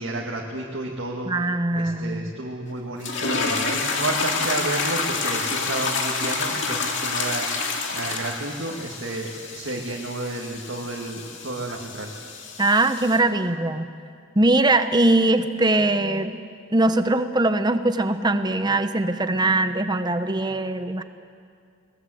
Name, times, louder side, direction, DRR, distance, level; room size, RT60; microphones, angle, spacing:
voice 1, 0.0-1.3 1.7-12.1, right 2 dB, 65° right, -1 dB, 1.9 m, -31 dB
voice 2, 1.3-2.3 12.6-13.8 14.4-16.4 16.7-21.0, right 2 dB, 20° right, 10 dB, 0.8 m, -21 dB
sound 1, 3.0-13.2, left 4 dB, 65° left, 2.2 m, -28 dB
21.5 x 20.0 x 7.8 m, 2.3 s
head